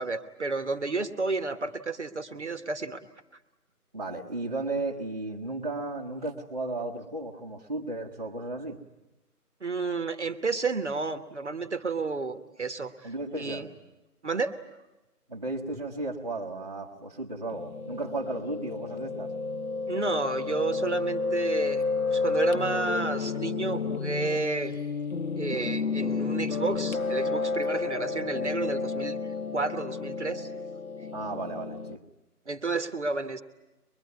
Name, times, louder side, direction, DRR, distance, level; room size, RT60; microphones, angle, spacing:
voice 1, 0.0-3.0 9.6-13.7 14.2-14.5 19.9-21.8 22.1-24.7 25.4-29.2 29.5-30.5 32.5-33.4, right 3 dB, 45° right, 11 dB, 1.3 m, -31 dB
voice 2, 3.9-8.8 13.0-13.6 15.3-19.3 31.1-32.0, right 2 dB, 25° right, -1 dB, 1.1 m, -34 dB
Piano, 17.5-32.0, left 4 dB, 65° left, 1.1 m, -31 dB
23.5 x 21.5 x 9.4 m, 0.97 s
figure-of-eight pair, 170°, 47 cm